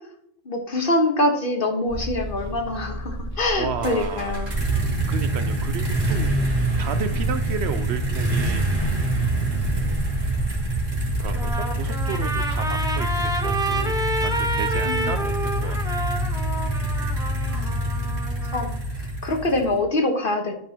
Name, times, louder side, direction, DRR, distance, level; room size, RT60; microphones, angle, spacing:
voice 1, 0.4-5.0 14.8-15.2 17.5-17.8 18.5-20.5, left 1 dB, 45° left, 4 dB, 1.3 m, -25 dB
sound 1, 1.9-11.5, equal, 45° right, 2.3 m, -32 dB
voice 2, 3.6-4.5 5.1-6.3 6.8-8.6 9.5-10.0 11.2-13.9 14.2-16.0, right 6 dB, 65° right, 10 dB, 0.8 m, -33 dB
sound 2, 3.8-19.8, right 1 dB, 90° right, 2.5 m, -26 dB
Trumpet, 11.2-18.7, right 1 dB, 5° right, 0.8 m, -29 dB
12.0 x 5.4 x 2.9 m, 0.72 s
omnidirectional pair, 1.3 m